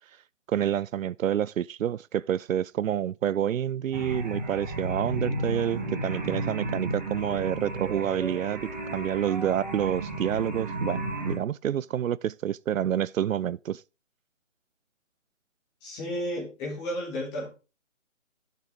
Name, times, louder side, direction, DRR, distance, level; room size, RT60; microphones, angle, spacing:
voice 1, 0.5-11.0 11.3-13.8, right 10 dB, 85° right, 0.5 m, -28 dB
sound 1, 3.9-11.4, right 1 dB, 35° right, 2.0 m, -33 dB
voice 2, 15.8-17.5, equal, 10° left, 2.7 m, -32 dB
14.5 x 6.8 x 3.7 m
hypercardioid pair, 170°, 38 cm